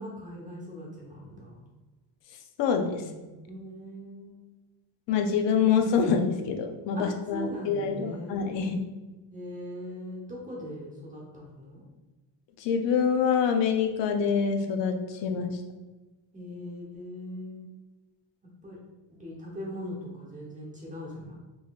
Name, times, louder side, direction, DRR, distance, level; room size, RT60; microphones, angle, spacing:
voice 1, 0.0-1.6 3.0-4.4 6.9-8.4 9.3-11.8 15.3-15.4 16.3-17.6 18.6-18.8 19.1-21.3, left 1 dB, 15° right, -3 dB, 1.0 m, -40 dB
voice 2, 2.6-3.0 5.1-8.8 12.6-15.5, left 6 dB, 65° left, 5 dB, 0.6 m, -26 dB
3.9 x 3.1 x 2.4 m, 1.2 s
cardioid pair, 140°, 46 cm